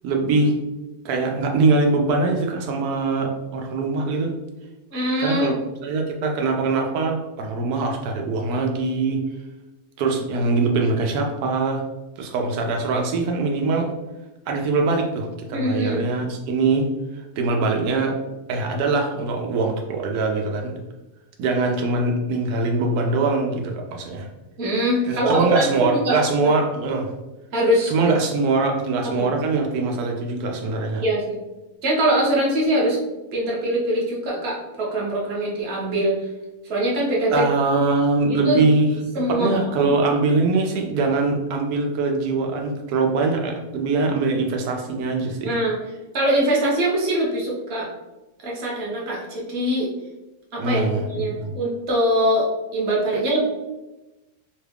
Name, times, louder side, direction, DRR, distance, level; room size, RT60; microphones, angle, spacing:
voice 1, 0.0-0.6 1.0-4.3 5.2-5.5 5.8-9.2 10.0-11.8 12.2-13.9 14.5-16.9 17.4-18.1 18.5-20.8 21.4-24.3 25.1-27.1 27.9-31.0 37.3-38.9 39.3-45.5 50.6-51.5, right 3 dB, 85° right, 2 dB, 1.1 m, -22 dB
voice 2, 4.9-5.5 15.5-16.0 24.6-26.5 27.5-27.9 29.0-29.2 31.0-31.4 31.8-33.0 33.3-36.2 36.7-37.4 38.3-38.6 39.1-40.0 45.4-45.8 46.1-47.9 48.4-49.9 50.5-53.4, right 1 dB, 50° right, -3 dB, 1.0 m, -23 dB
3.1 x 2.3 x 3.3 m, 1.0 s
omnidirectional pair, 1.6 m